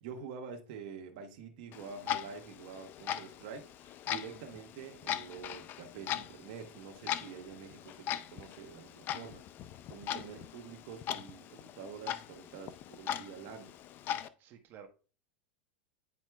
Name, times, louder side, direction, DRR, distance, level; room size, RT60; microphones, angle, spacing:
voice 1, 0.0-9.4 9.9-13.7, right 6 dB, 60° right, 1.2 m, -47 dB
Clock, 1.7-14.3, left 11 dB, 35° left, 0.4 m, -40 dB
voice 2, 14.4-14.9, right 8 dB, 35° right, 1.1 m, -53 dB
9.8 x 4.4 x 2.3 m
supercardioid pair, 130°, 6 cm